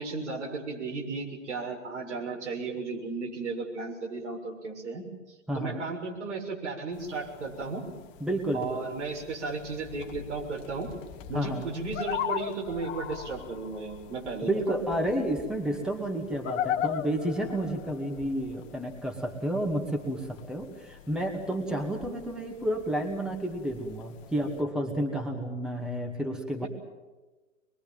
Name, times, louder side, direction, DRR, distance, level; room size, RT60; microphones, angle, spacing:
voice 1, 0.0-7.8 8.5-10.9 11.3-15.1 26.6-26.7, right 3 dB, 65° right, 0 dB, 6.8 m, -35 dB
voice 2, 5.5-5.8 8.2-8.7 11.3-11.7 14.4-26.7, right 1 dB, ahead, 3 dB, 2.3 m, -31 dB
sound 1, 6.9-24.6, left 9 dB, 30° left, 1.5 m, -40 dB
24.5 x 23.0 x 7.6 m, 1.2 s
figure-of-eight pair, 110°, 37 cm